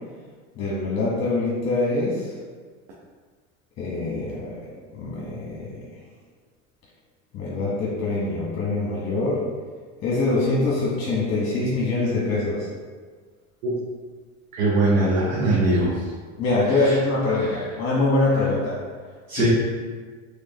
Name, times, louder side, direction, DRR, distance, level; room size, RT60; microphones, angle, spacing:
voice 1, 0.6-2.3 3.8-4.5 4.9-5.7 7.3-9.5 10.0-12.7 16.4-18.8 19.3-19.5, left 2 dB, 35° left, -5 dB, 1.0 m, -24 dB
voice 2, 14.6-16.0 16.7-17.0 17.3-17.6 19.3-19.5, right 2 dB, 80° right, -6 dB, 0.9 m, -22 dB
3.6 x 3.3 x 2.8 m, 1.5 s
hypercardioid pair, 85°, 41 cm